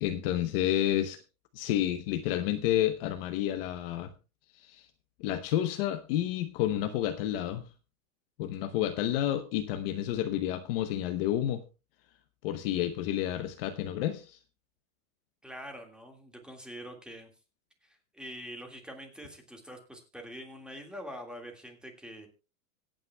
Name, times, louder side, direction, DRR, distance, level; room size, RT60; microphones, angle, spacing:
voice 1, 0.0-1.2 1.5-4.1 4.5-4.9 5.2-7.6 8.4-11.6 12.4-14.4, left 12 dB, 40° left, 8 dB, 0.8 m, -30 dB
voice 2, 15.4-17.3 17.8-22.3, equal, ahead, 3 dB, 1.8 m, -45 dB
25.0 x 8.9 x 2.2 m, 0.29 s
supercardioid pair, 165°, 42 cm